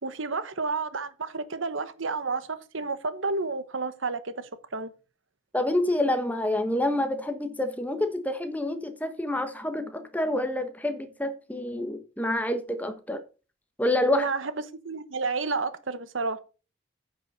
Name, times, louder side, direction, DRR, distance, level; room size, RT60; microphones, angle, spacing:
voice 1, 0.0-4.9 14.1-14.5 14.8-16.4, right 4 dB, 80° right, 1.1 m, -31 dB
voice 2, 5.5-13.2 13.8-14.3, left 1 dB, 10° left, 1.2 m, -27 dB
9.6 x 6.2 x 5.4 m
head